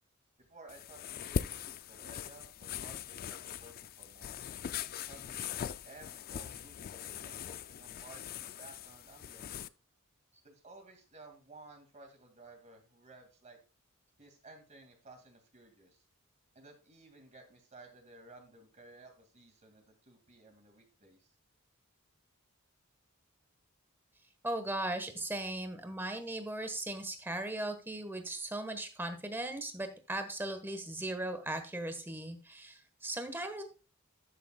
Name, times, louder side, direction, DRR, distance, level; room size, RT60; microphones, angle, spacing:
voice 1, 0.4-4.4 5.0-9.7 10.4-13.6 14.2-16.0 16.5-21.3, right 2 dB, 35° right, 4 dB, 2.1 m, -56 dB
sound 1, 0.7-9.7, left 8 dB, 45° left, 0.3 m, -41 dB
voice 2, 24.4-33.6, right 1 dB, 10° right, 8 dB, 1.2 m, -38 dB
12.5 x 7.0 x 2.3 m, 0.33 s
head